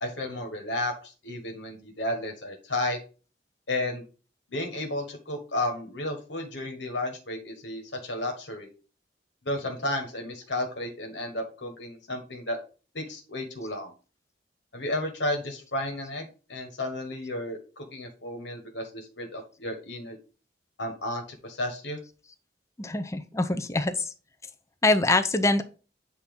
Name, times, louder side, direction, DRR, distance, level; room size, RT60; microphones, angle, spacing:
voice 1, 0.0-3.0 3.7-4.0 4.5-8.7 9.4-12.6 12.9-13.9 14.7-20.2 20.8-22.0, left 1 dB, 85° left, 3 dB, 1.4 m, -33 dB
voice 2, 22.8-24.1 24.8-25.6, left 2 dB, 15° left, 8 dB, 0.5 m, -24 dB
8.2 x 2.8 x 5.3 m, 0.35 s
head